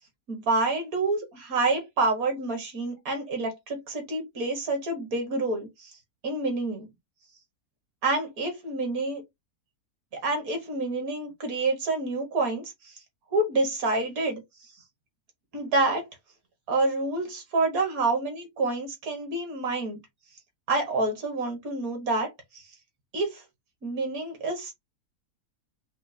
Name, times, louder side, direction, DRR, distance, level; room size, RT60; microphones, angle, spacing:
voice 1, 0.3-6.0 6.2-6.9 8.0-9.2 10.1-12.9 13.3-14.4 15.5-16.1 16.7-20.0 20.7-22.6 23.1-23.4 23.8-24.7, right 2 dB, 65° right, 1.7 m, -28 dB
5.3 x 2.0 x 2.6 m
omnidirectional pair, 1.7 m